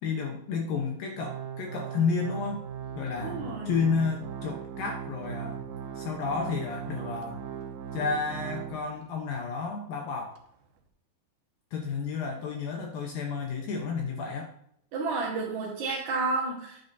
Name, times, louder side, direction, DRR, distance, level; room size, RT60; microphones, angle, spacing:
voice 1, 0.0-2.6 3.0-3.4 3.7-5.6 6.0-7.4 7.9-10.4 11.7-14.5, left 5 dB, 75° left, 2 dB, 2.1 m, -31 dB
Organ, 1.2-9.2 9.6-9.7 10.4-10.5, right 8 dB, 90° right, 1.9 m, -39 dB
voice 2, 3.2-3.7 14.9-16.8, right 3 dB, 60° right, -6 dB, 2.1 m, -31 dB
9.6 x 9.3 x 2.7 m, 0.74 s
omnidirectional pair, 5.3 m